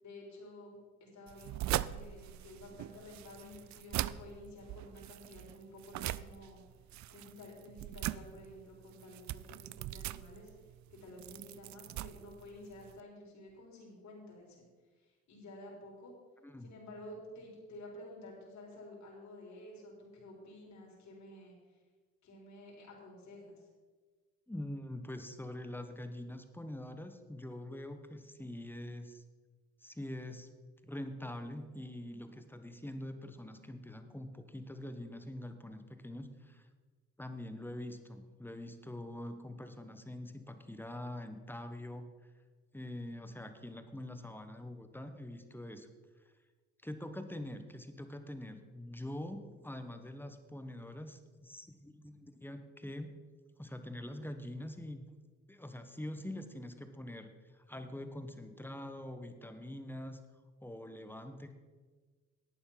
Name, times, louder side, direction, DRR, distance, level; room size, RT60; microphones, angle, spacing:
voice 1, 0.0-6.6 7.1-10.5 10.9-14.7 15.0-16.1 16.6-21.8 22.2-23.7, left 1 dB, 65° left, -2 dB, 4.0 m, -51 dB
sound 1, 1.3-13.0, right 14 dB, 65° right, 0.4 m, -41 dB
voice 2, 24.5-29.2 29.8-30.5 30.8-36.7 37.2-42.1 42.7-45.9 46.8-53.1 53.6-55.1 55.5-60.2 60.6-61.5, left 1 dB, 5° left, 8 dB, 1.1 m, -44 dB
11.5 x 8.8 x 5.7 m, 1.4 s
cardioid pair, 90°, 30 cm